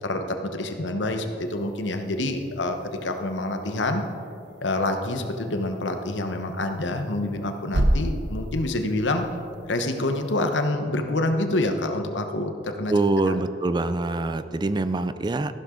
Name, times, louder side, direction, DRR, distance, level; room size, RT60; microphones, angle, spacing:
voice 1, 0.0-2.8 3.0-4.0 4.6-9.3 9.7-12.9 13.3-13.4, left 2 dB, 85° left, 6 dB, 1.1 m, -27 dB
sound 1, 1.4-10.7, right 1 dB, 65° right, 1.0 m, -33 dB
voice 2, 12.9-15.6, right 2 dB, 25° right, 12 dB, 0.4 m, -24 dB
14.0 x 11.5 x 3.9 m, 2.5 s
head